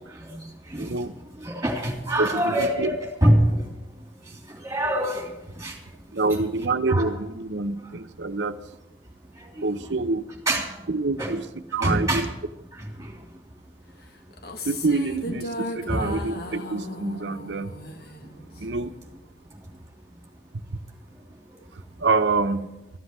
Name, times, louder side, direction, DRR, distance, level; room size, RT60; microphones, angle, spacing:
voice 1, 0.1-0.9 1.4-3.6 4.5-5.8 6.9-7.1 9.6-9.7 10.5-10.7 11.2-11.3 11.8-12.3 12.7-13.1 15.9-16.1, right 1 dB, 15° right, 1 dB, 3.0 m, -25 dB
voice 2, 0.8-1.1 2.2-3.0 6.1-8.6 9.6-10.2 10.9-11.4 11.7-12.3 14.6-17.7 18.6-18.9 22.0-22.7, right 3 dB, 75° right, 10 dB, 0.8 m, -26 dB
sound 1, 14.3-18.8, left 1 dB, 55° left, 1.5 m, -35 dB
14.0 x 8.1 x 8.5 m, 0.98 s
head